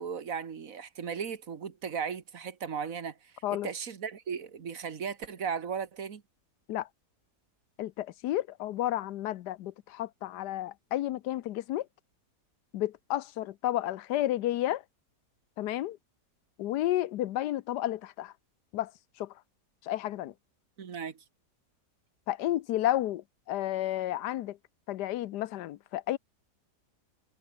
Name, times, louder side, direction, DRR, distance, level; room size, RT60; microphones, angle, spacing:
voice 1, 0.0-3.1 3.5-6.2 20.8-21.1, right 6 dB, 55° right, 1.7 m, -36 dB
voice 2, 7.8-11.9 12.7-14.8 15.6-16.0 16.6-18.3 18.7-18.9 19.2-19.3 19.8-20.3 22.3-24.6 24.9-26.2, left 14 dB, 85° left, 1.3 m, -31 dB
omnidirectional pair, 1.7 m